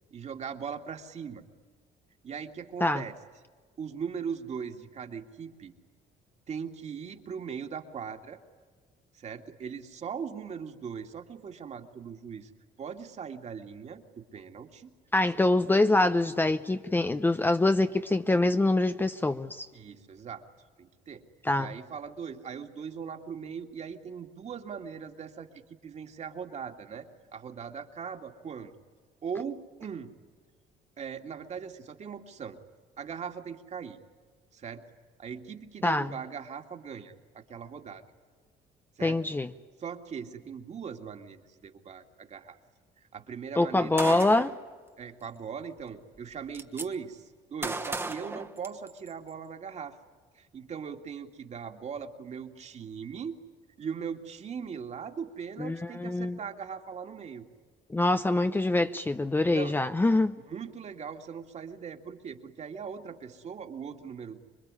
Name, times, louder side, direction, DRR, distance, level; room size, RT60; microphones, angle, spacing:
voice 1, 0.1-1.4 2.2-3.1 3.8-5.7 6.5-8.4 9.1-12.5 12.8-14.9 15.4-15.5 19.7-20.4 20.8-21.2 21.6-28.7 29.2-30.1 31.0-32.6 33.0-34.0 34.5-34.8 35.2-38.0 39.0-39.2 39.8-42.6 43.0-44.2 45.0-50.0 50.3-53.4 53.8-57.5 59.5-59.8 60.5-64.4, right 6 dB, 40° right, 2.3 m, -40 dB
voice 2, 15.1-19.7 21.4-21.7 35.8-36.1 39.0-39.5 43.6-44.5 55.6-56.4 57.9-60.3, left 2 dB, 10° left, 0.7 m, -25 dB
Gunshot gunfire, 44.0-44.6 45.8-45.9 46.2-46.9 47.6-49.1, right 2 dB, 15° right, 1.4 m, -35 dB
26.0 x 22.0 x 9.8 m
cardioid pair, 110°, 17 cm